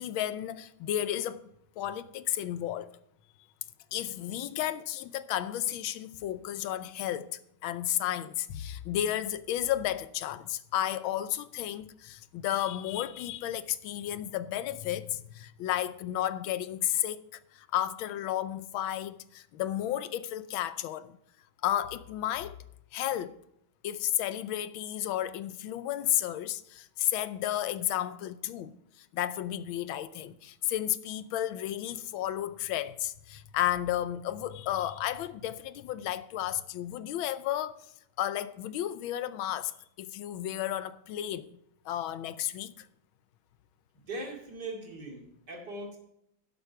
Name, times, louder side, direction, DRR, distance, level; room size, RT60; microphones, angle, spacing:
voice 1, 0.0-1.4 1.8-2.9 3.9-17.3 17.5-21.2 21.6-22.6 22.9-23.4 23.8-28.7 29.1-37.8 38.2-39.7 40.0-41.5 41.9-42.9, left 12 dB, 85° left, 1.4 m, -32 dB
voice 2, 43.9-46.0, right 2 dB, 55° right, 3.2 m, -40 dB
12.0 x 8.0 x 4.7 m
omnidirectional pair, 2.2 m